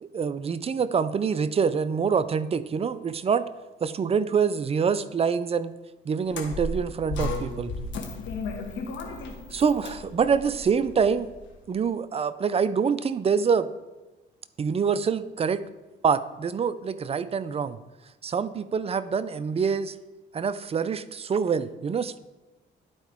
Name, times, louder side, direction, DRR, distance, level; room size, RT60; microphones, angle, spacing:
voice 1, 0.0-3.4 3.8-5.7 6.1-7.7 9.5-11.3 11.7-13.7 14.6-15.6 16.0-17.8 18.2-19.9 20.3-22.2, right 6 dB, 30° right, 14 dB, 0.4 m, -25 dB
sound 1, 6.3-11.5, left 2 dB, 70° left, 1.3 m, -34 dB
11.5 x 4.5 x 3.5 m, 1.1 s
cardioid pair, 90°, 20 cm